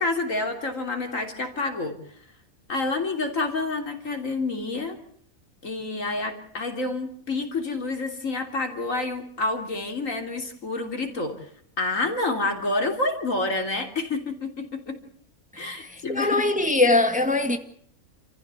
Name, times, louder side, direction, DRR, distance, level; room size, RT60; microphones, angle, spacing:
voice 1, 0.0-2.0 2.7-5.0 5.6-11.5 11.8-15.0 15.6-16.4, left 2 dB, 65° left, 3.5 m, -28 dB
voice 2, 15.5-17.6, left 2 dB, 5° right, 1.9 m, -22 dB
28.5 x 15.0 x 8.2 m
omnidirectional pair, 1.5 m